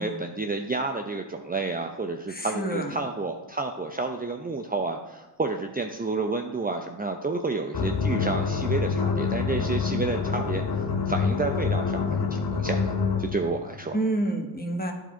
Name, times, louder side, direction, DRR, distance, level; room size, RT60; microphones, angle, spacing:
voice 1, 0.0-12.9 13.2-14.0, right 3 dB, 20° right, 3 dB, 0.7 m, -30 dB
voice 2, 2.3-2.9 13.9-14.9, right 1 dB, 20° left, 3 dB, 1.5 m, -28 dB
sound 1, 7.7-13.4, left 5 dB, 50° left, 1.2 m, -26 dB
11.0 x 4.6 x 4.5 m, 1.1 s
supercardioid pair, 50°, 47 cm